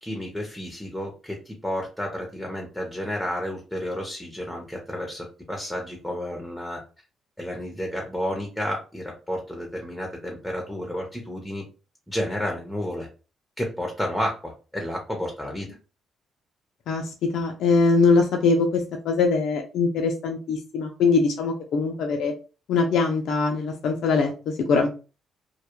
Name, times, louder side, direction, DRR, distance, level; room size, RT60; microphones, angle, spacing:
voice 1, 0.0-6.8 7.4-11.6 12.1-13.1 13.6-15.7, equal, ahead, 1 dB, 0.6 m, -31 dB
voice 2, 16.9-22.3 22.7-24.9, left 4 dB, 80° left, 2 dB, 0.4 m, -22 dB
2.2 x 2.1 x 2.9 m, 0.34 s
cardioid pair, 90°, 0 cm